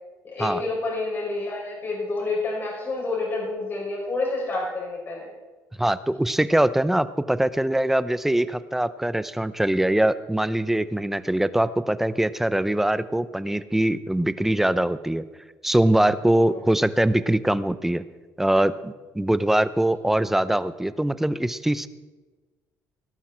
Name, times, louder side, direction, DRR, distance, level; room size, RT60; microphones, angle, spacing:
voice 1, 0.3-5.3, left 3 dB, 35° left, -2 dB, 6.0 m, -28 dB
voice 2, 5.8-15.2 15.6-18.0 18.4-21.9, right 1 dB, 5° right, 15 dB, 0.5 m, -22 dB
18.0 x 12.0 x 4.4 m, 1.3 s
cardioid pair, 135°, 6 cm